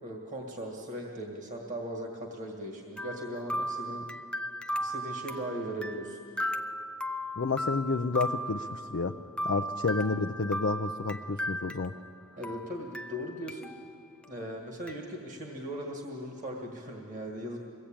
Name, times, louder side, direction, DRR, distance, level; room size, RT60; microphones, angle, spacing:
voice 1, 0.0-4.1 4.8-6.2 12.4-13.7 14.3-17.6, equal, 35° right, 0 dB, 1.8 m, -38 dB
sound 1, 3.0-12.2 12.4-13.9 14.2-14.3 14.9-15.0, equal, 5° left, 0.5 m, -36 dB
voice 2, 7.4-9.1 9.4-11.9, left 4 dB, 55° left, 5 dB, 0.5 m, -30 dB
23.0 x 16.5 x 8.7 m, 2.6 s
head